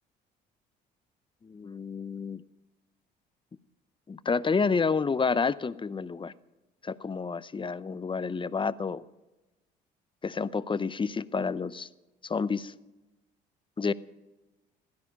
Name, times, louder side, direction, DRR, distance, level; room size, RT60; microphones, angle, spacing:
voice 1, 1.4-2.4 4.1-6.3 6.8-9.0 10.2-11.9 12.2-12.7 13.8-13.9, left 5 dB, 25° left, 17 dB, 0.7 m, -29 dB
16.5 x 12.5 x 5.4 m, 1.1 s
hypercardioid pair, 60°, 21 cm